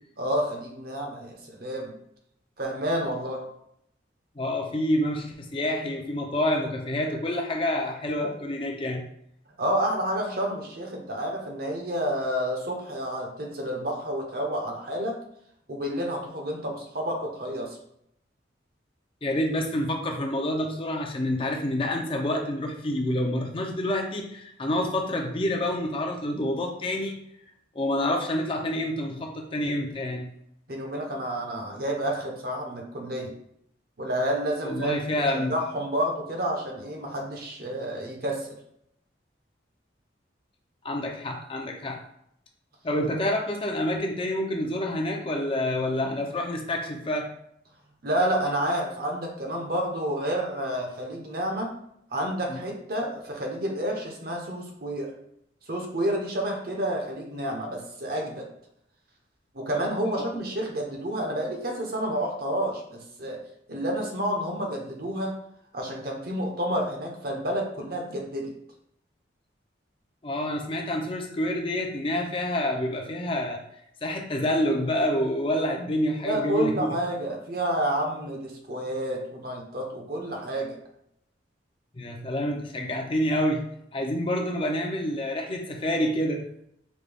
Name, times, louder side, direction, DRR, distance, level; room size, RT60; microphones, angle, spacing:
voice 1, 0.2-1.9 2.6-3.4 9.6-15.2 15.7-17.8 30.7-33.3 34.0-35.0 35.3-38.6 48.0-51.7 52.1-55.1 55.7-58.5 59.5-63.4 63.7-65.3 65.7-68.5 76.2-80.8, right 1 dB, 50° right, 1 dB, 0.8 m, -29 dB
voice 2, 4.4-9.0 19.2-27.2 27.7-30.3 34.6-35.5 40.8-42.0 42.8-47.3 52.5-52.6 60.1-60.2 70.2-73.6 74.0-77.0 81.9-83.6 83.9-86.4, left 1 dB, 30° left, 2 dB, 0.5 m, -28 dB
5.1 x 2.3 x 3.4 m, 0.74 s
head